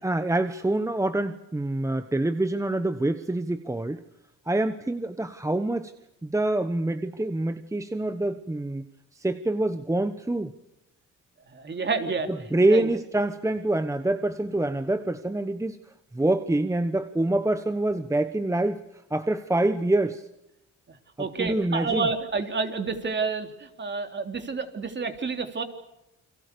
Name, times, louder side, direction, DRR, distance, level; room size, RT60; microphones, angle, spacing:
voice 1, 0.0-4.0 4.5-5.9 6.2-8.8 9.2-10.5 12.5-15.8 16.1-18.8 19.1-20.2 21.2-22.1, right 2 dB, 10° right, 10 dB, 1.2 m, -26 dB
voice 2, 11.5-12.3 12.7-12.9 21.2-25.6, right 4 dB, 35° right, 6 dB, 3.4 m, -29 dB
29.5 x 24.0 x 6.9 m, 0.85 s
cardioid pair, 90°, 30 cm